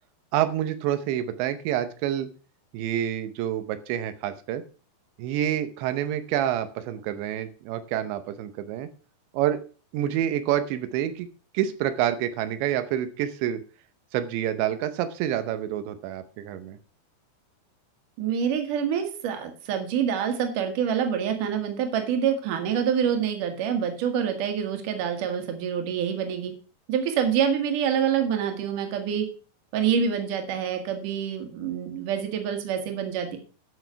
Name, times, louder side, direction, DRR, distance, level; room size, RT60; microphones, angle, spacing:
voice 1, 0.3-2.3 2.7-4.6 5.2-8.9 9.3-9.6 9.9-11.3 11.5-13.6 14.1-16.8, right 11 dB, 90° right, 10 dB, 3.2 m, -27 dB
voice 2, 18.2-26.5 26.9-29.3 29.7-33.4, right 8 dB, 55° right, 5 dB, 3.0 m, -26 dB
11.5 x 6.3 x 5.7 m, 0.38 s
omnidirectional pair, 5.0 m